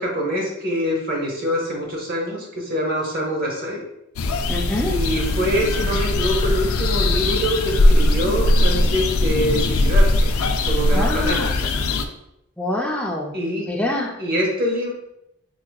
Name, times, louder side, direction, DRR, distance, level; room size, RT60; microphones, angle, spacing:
voice 1, 0.0-3.9 4.9-10.3 10.7-11.7 13.3-13.7 14.2-14.9, equal, 45° right, -2 dB, 0.9 m, -24 dB
sound 1, 4.2-12.1, left 2 dB, 80° left, 0.3 m, -19 dB
voice 2, 4.5-5.0 10.9-11.5 12.6-13.3 13.7-14.2, left 1 dB, 5° left, -1 dB, 0.4 m, -25 dB
4.8 x 2.6 x 2.3 m, 0.83 s
head